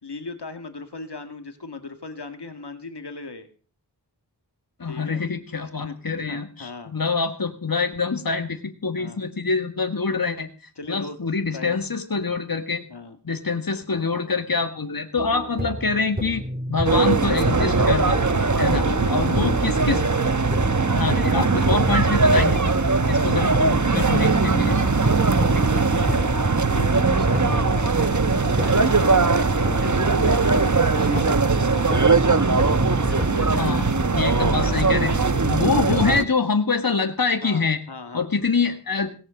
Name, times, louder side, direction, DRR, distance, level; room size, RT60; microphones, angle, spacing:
voice 1, 0.0-3.5 4.9-5.2 5.7-6.0 6.2-6.9 9.0-9.2 10.8-11.2 11.5-11.8 12.9-13.2 18.7-19.5 22.5-22.8 24.0-24.3 24.7-32.3 33.0-33.8 34.4-34.9 35.3-36.2 37.4-38.3, left 3 dB, 75° left, 8 dB, 1.9 m, -37 dB
voice 2, 4.8-10.5 10.9-12.8 13.2-16.4 16.7-18.2 18.6-20.0 20.9-22.6 23.1-24.8 33.6-35.1 35.4-37.8 38.1-39.1, left 4 dB, 55° left, 7 dB, 1.8 m, -25 dB
sound 1, 15.2-33.4, equal, 20° right, 2.4 m, -31 dB
sound 2, 16.8-36.2, right 4 dB, 45° right, 1.1 m, -20 dB
18.0 x 7.7 x 7.6 m, 0.38 s
wide cardioid pair, 40°, 40 cm